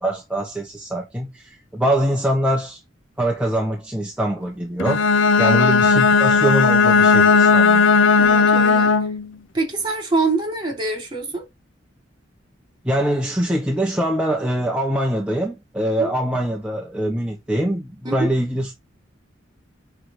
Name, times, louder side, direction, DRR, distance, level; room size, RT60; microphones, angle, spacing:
voice 1, 0.0-2.8 3.2-5.1 5.4-7.8 12.8-18.7, right 1 dB, 5° right, 1.1 m, -23 dB
Bowed string instrument, 4.8-9.3, left 5 dB, 85° left, 0.7 m, -15 dB
voice 2, 8.2-8.9 9.5-11.4 16.0-16.1 18.0-18.3, right 3 dB, 25° right, 2.8 m, -25 dB
9.2 x 3.4 x 3.9 m
head